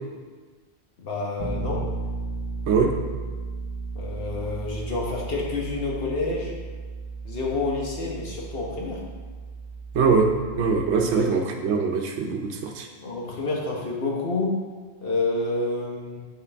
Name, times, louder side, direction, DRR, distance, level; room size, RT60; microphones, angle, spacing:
voice 1, 1.0-1.9 3.9-6.5 7.2-9.0 11.1-11.3 13.0-14.6 15.0-16.2, left 3 dB, 60° left, -3 dB, 1.4 m, -28 dB
Bass guitar, 1.4-11.2, right 4 dB, 35° right, 0.7 m, -35 dB
voice 2, 9.9-10.3 10.6-12.9, right 5 dB, 85° right, 2 dB, 1.0 m, -22 dB
8.4 x 4.5 x 3.4 m, 1.5 s
omnidirectional pair, 1.1 m